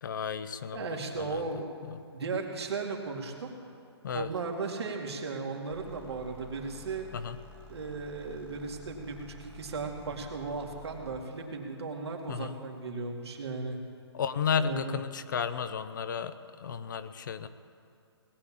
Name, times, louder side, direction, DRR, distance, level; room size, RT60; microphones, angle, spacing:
voice 1, 0.0-1.5 1.8-2.0 4.0-4.3 7.1-7.4 12.3-12.6 14.1-17.5, left 7 dB, 45° left, 12 dB, 0.6 m, -33 dB
voice 2, 0.7-1.7 2.1-3.6 4.1-7.1 7.7-13.8 14.5-15.0, right 4 dB, 70° right, 1 dB, 2.4 m, -36 dB
sound 1, 5.7-11.2, left 1 dB, 15° right, 1.7 m, -51 dB
19.0 x 8.6 x 7.4 m, 2.6 s
hypercardioid pair, 165°, 14 cm